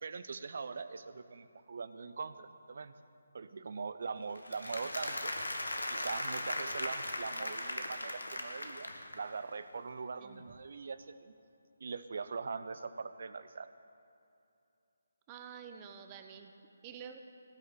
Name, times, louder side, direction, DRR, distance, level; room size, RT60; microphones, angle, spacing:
voice 1, 0.0-2.9 3.3-5.3 5.9-11.3 11.8-13.7, right 4 dB, 50° right, 12 dB, 0.7 m, -42 dB
Applause, 4.3-9.4, left 1 dB, 75° left, 1.6 m, -38 dB
voice 2, 15.3-16.5 16.8-17.2, right 7 dB, 20° right, 6 dB, 1.0 m, -48 dB
18.5 x 6.5 x 9.3 m, 2.6 s
figure-of-eight pair, 145°, 0 cm